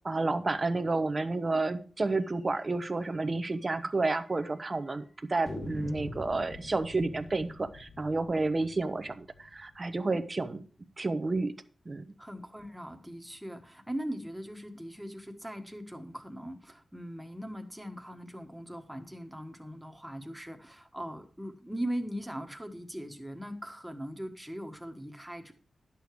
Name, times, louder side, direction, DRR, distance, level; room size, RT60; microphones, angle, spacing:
voice 1, 0.0-10.6 11.0-11.5 11.9-12.0, right 3 dB, 30° right, 10 dB, 0.8 m, -30 dB
sound 1, 2.6-2.8 3.1-3.2 3.5-3.6 4.2-4.7 5.5-10.2, left 2 dB, 35° left, 2.0 m, -44 dB
voice 2, 12.2-25.5, equal, 5° right, 5 dB, 1.4 m, -40 dB
11.0 x 6.9 x 4.7 m, 0.41 s
wide cardioid pair, 105°, 0 cm